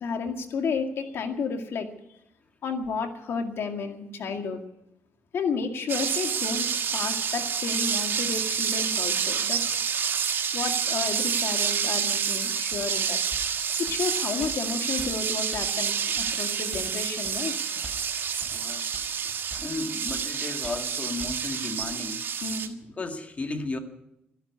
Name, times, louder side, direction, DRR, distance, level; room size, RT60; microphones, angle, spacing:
voice 1, 0.0-1.9 2.6-4.6 5.3-9.8 10.5-13.2 13.8-17.5 22.4-22.8, left 5 dB, 70° left, 2.0 m, -32 dB
sound 1, 5.9-22.7, right 7 dB, 55° right, 1.4 m, -28 dB
sound 2, 12.7-12.9 13.3-13.5 13.9-14.0 14.4-14.5 15.0-15.1 15.5-15.7 16.2-16.3 16.7-16.9 17.2-17.4 17.8-18.0 18.4-18.5 18.9-19.1 19.5-19.7 20.1-20.2 20.6-20.9 21.2-21.3 21.8-21.9, right 1 dB, 10° left, 3.4 m, -43 dB
voice 2, 18.5-18.8 19.6-22.2 23.0-23.8, left 3 dB, 35° left, 1.9 m, -34 dB
12.5 x 12.0 x 9.5 m
cardioid pair, 90°, 4 cm